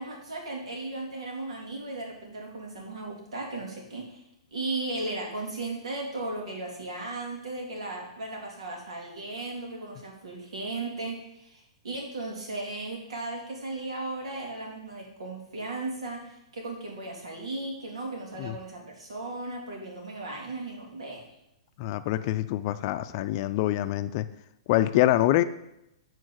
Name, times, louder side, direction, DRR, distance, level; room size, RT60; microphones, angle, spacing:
voice 1, 0.0-4.2 4.5-21.2, right 2 dB, 80° right, -1 dB, 3.1 m, -36 dB
voice 2, 21.8-24.3 24.7-25.4, left 14 dB, 45° left, 12 dB, 0.5 m, -25 dB
8.5 x 4.5 x 6.3 m, 0.84 s
hypercardioid pair, 130°, 3 cm